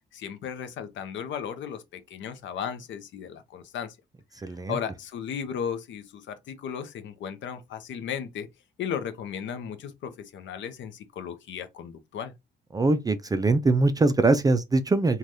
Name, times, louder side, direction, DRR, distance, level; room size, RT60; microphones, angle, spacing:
voice 1, 0.1-4.0 4.4-8.5 8.8-12.3, left 8 dB, 70° left, 0.6 m, -35 dB
voice 2, 4.4-4.8 12.7-15.2, right 2 dB, 20° right, 0.3 m, -22 dB
3.2 x 2.3 x 2.6 m
cardioid pair, 90°, 20 cm